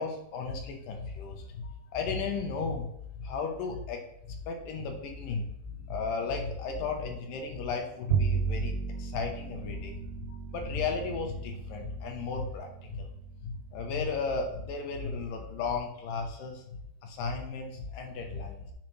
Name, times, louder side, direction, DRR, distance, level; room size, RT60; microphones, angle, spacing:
voice 1, 0.0-2.9 3.2-4.0 4.3-10.0 10.5-13.1 13.4-16.6 17.0-18.7, left 4 dB, 85° left, 3 dB, 2.7 m, -34 dB
Bowed string instrument, 8.1-14.6, right 6 dB, 80° right, 2.0 m, -35 dB
9.4 x 4.9 x 3.2 m, 0.77 s
omnidirectional pair, 3.8 m